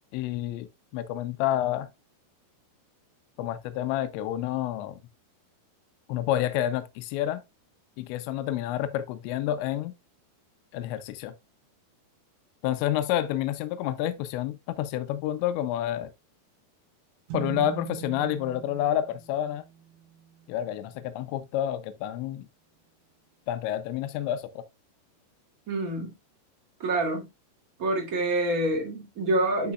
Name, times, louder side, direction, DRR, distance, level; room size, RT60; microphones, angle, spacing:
voice 1, 0.1-0.7 0.9-1.9 3.4-5.0 6.1-7.4 8.0-9.9 10.7-11.3 12.6-16.1 17.3-19.6 20.5-22.5 23.5-24.6, left 12 dB, 85° left, 3.0 m, -29 dB
sound 1, 17.3-20.9, right 9 dB, 90° right, 3.7 m, -41 dB
voice 2, 25.7-26.1 26.8-27.3 27.8-29.7, right 1 dB, 35° right, 1.5 m, -27 dB
12.5 x 4.5 x 2.3 m
omnidirectional pair, 5.2 m